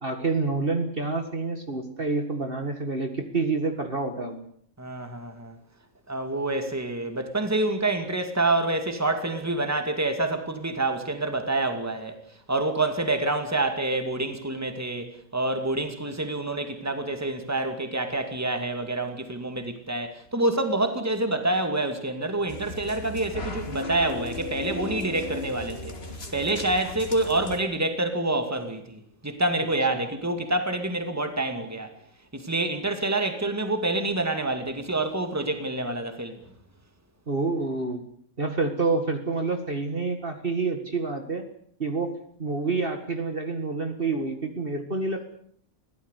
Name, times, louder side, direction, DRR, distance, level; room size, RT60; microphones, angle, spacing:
voice 1, 0.0-4.4 37.3-38.0 38.4-41.4 41.8-42.1 42.4-45.3, right 3 dB, 40° right, 2.2 m, -28 dB
voice 2, 4.8-5.6 6.1-12.2 12.5-25.9 26.3-31.9 32.3-36.4, right 2 dB, 10° right, 2.4 m, -27 dB
sound 1, 22.5-27.6, left 3 dB, 45° left, 2.7 m, -36 dB
23.0 x 16.5 x 8.3 m
omnidirectional pair, 1.5 m